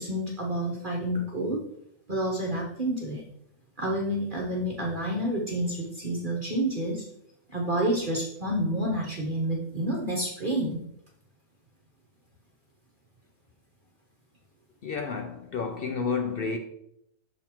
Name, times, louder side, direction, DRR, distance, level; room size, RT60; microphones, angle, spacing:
voice 1, 0.0-1.6 2.1-3.3 3.8-7.0 7.5-10.8, right 1 dB, 40° right, 1.0 m, -29 dB
voice 2, 14.8-16.6, left 5 dB, 60° left, 0.6 m, -30 dB
6.5 x 3.9 x 4.4 m
omnidirectional pair, 1.5 m